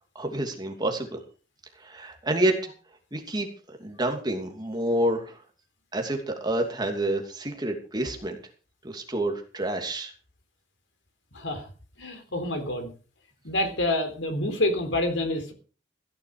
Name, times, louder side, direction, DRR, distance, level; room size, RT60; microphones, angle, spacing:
voice 1, 0.1-1.2 1.8-2.7 3.1-5.4 5.9-8.4 8.8-10.1, right 1 dB, 25° right, 3 dB, 2.7 m, -28 dB
voice 2, 11.3-11.6 12.0-12.9 13.4-15.5, left 1 dB, 80° left, 6 dB, 4.0 m, -27 dB
16.0 x 11.0 x 4.9 m, 0.36 s
head